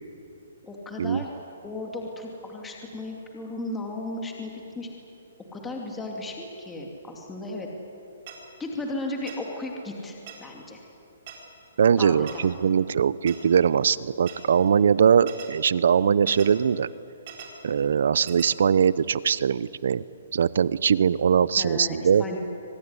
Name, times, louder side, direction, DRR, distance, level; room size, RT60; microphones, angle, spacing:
voice 1, 0.6-1.3 1.6-4.9 5.5-7.7 8.6-10.8 12.0-12.5 21.6-22.4, left 2 dB, 10° left, 0 dB, 2.6 m, -35 dB
sound 1, 8.3-8.4 9.3-9.4 10.3-10.4 11.3-11.4 12.3-12.4 13.3-13.4 14.3-14.4 15.3-15.5 16.3-16.5 17.3-17.5 18.3-18.5, right 11 dB, 40° right, 4.5 m, -40 dB
voice 2, 11.8-16.9 17.6-20.0 20.3-22.2, right 7 dB, 70° right, 19 dB, 0.7 m, -21 dB
25.0 x 19.5 x 9.8 m, 2.9 s
hypercardioid pair, 160°, 0 cm